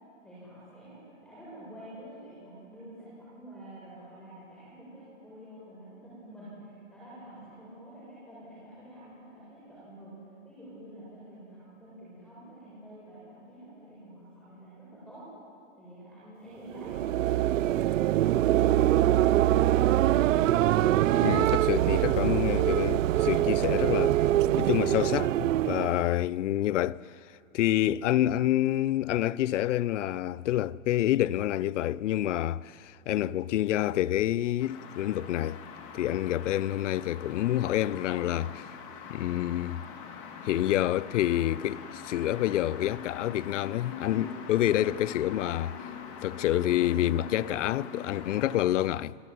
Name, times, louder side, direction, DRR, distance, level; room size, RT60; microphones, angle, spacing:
voice 1, 0.2-6.5 6.9-10.2 10.4-15.3 15.8-20.4, right 1 dB, 5° left, 7.8 m, -48 dB
sound 1, 16.7-26.1, right 13 dB, 80° right, 0.6 m, -24 dB
voice 2, 21.2-24.2 24.6-27.0 27.5-35.6 35.9-38.7 39.1-39.8 40.4-45.9 46.2-49.2, left 13 dB, 70° left, 0.7 m, -28 dB
sound 2, 34.6-48.6, left 6 dB, 35° left, 3.1 m, -43 dB
27.0 x 18.5 x 9.4 m
supercardioid pair, 160°, 38 cm